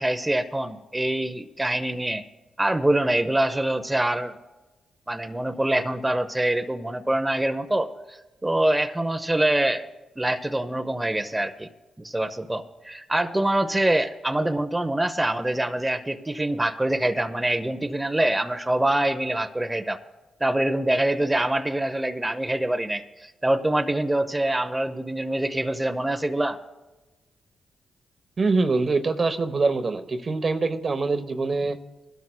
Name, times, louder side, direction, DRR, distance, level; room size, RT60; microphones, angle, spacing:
voice 1, 0.0-2.2 2.6-4.3 5.1-9.9 10.2-11.7 12.0-20.0 20.4-26.6, right 1 dB, 15° right, 6 dB, 0.7 m, -25 dB
voice 2, 28.4-31.8, right 3 dB, 45° right, 8 dB, 0.9 m, -24 dB
20.0 x 12.5 x 2.2 m, 1.1 s
supercardioid pair, 55°, 0 cm